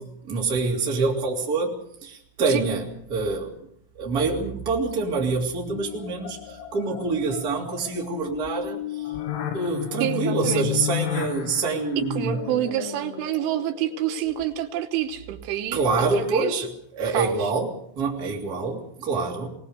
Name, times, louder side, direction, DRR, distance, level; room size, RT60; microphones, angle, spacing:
voice 1, 0.0-1.7 2.0-3.5 3.9-9.1 9.5-12.4 15.7-16.7 16.9-17.7 18.0-19.5, right 4 dB, 25° right, -1 dB, 2.6 m, -26 dB
sound 1, 5.7-14.8, left 12 dB, 80° left, 3.9 m, -33 dB
voice 2, 10.0-10.7 12.0-15.8 16.1-16.6 17.1-17.5, right 11 dB, 80° right, 7 dB, 3.4 m, -28 dB
21.0 x 19.0 x 6.7 m, 0.74 s
omnidirectional pair, 5.6 m